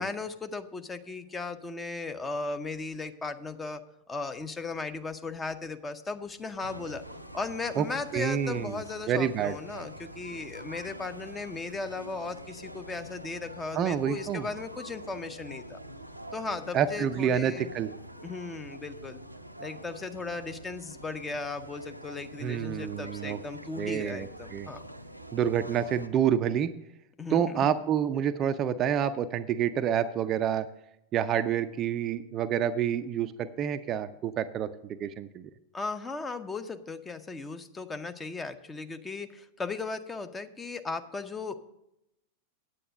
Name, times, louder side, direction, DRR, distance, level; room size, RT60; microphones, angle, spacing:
voice 1, 0.0-3.8 4.1-7.0 7.3-15.8 16.3-17.7 18.2-19.2 19.6-24.8 27.2-27.7 35.7-41.6, left 3 dB, 15° left, 9 dB, 0.7 m, -36 dB
sound 1, 6.6-26.1, right 1 dB, 90° right, 0.5 m, -45 dB
voice 2, 8.1-8.8 9.1-9.6 13.7-14.5 16.7-17.9 22.4-23.4 23.8-24.7 25.3-26.7 27.3-30.7 31.1-35.5, right 9 dB, 30° right, 11 dB, 0.4 m, -28 dB
8.8 x 8.3 x 6.4 m, 0.86 s
figure-of-eight pair, 90°, 0 cm